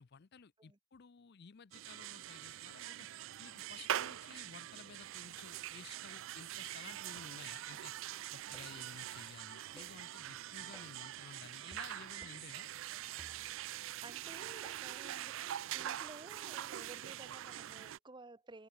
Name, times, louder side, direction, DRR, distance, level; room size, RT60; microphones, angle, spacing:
voice 1, 0.0-3.1 3.4-7.9 8.3-12.7, left 5 dB, 50° left, 0.5 m, -55 dB
sound 1, 1.7-18.0, right 12 dB, 60° right, 0.3 m, -44 dB
sound 2, 8.5-8.9 9.8-10.0 10.7-11.0 11.7-11.9 12.2-12.5 13.2-13.8 14.6-15.0 15.8-16.1, equal, ahead, 1.6 m, -60 dB
sound 3, 9.2-15.8, left 14 dB, 75° left, 6.1 m, -73 dB
voice 2, 13.7-18.7, right 2 dB, 20° right, 0.8 m, -55 dB
open air
head